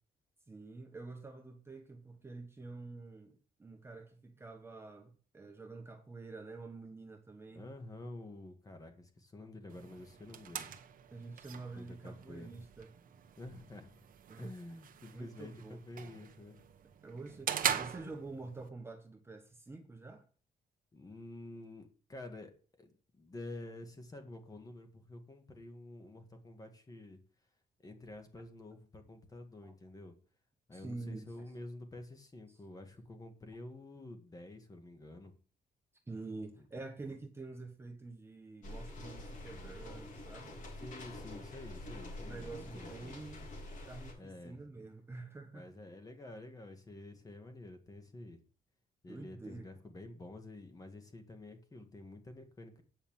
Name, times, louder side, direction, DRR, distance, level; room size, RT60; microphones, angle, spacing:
voice 1, 0.5-7.6 11.1-12.9 14.3-14.5 15.1-15.8 17.0-20.2 29.6-29.7 30.7-31.4 32.5-32.6 36.1-40.6 42.3-43.5 43.9-45.7 49.1-49.7, right 3 dB, 15° right, 1.2 m, -47 dB
voice 2, 7.5-10.7 11.7-12.5 13.4-13.9 14.4-16.7 20.9-22.5 22.8-22.9 23.2-27.2 27.8-30.1 30.7-35.3 40.8-43.2 44.2-44.6 45.5-48.4 49.0-52.8, left 2 dB, 20° left, 1.8 m, -49 dB
sound 1, 9.7-18.7, right 9 dB, 60° right, 1.1 m, -42 dB
sound 2, 38.6-44.1, left 1 dB, 55° left, 3.3 m, -46 dB
9.0 x 5.6 x 7.3 m
cardioid pair, 165°, 16 cm